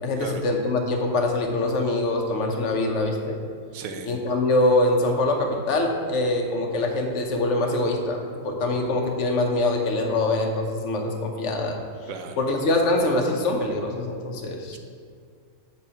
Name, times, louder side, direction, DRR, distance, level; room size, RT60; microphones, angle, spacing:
voice 1, 0.0-3.4 4.1-11.8 12.4-14.8, left 2 dB, 65° left, 2 dB, 1.0 m, -24 dB
voice 2, 3.7-4.1 12.1-12.4 14.7-14.8, right 5 dB, 80° right, 6 dB, 1.0 m, -35 dB
6.9 x 6.1 x 2.8 m, 2.1 s
omnidirectional pair, 1.4 m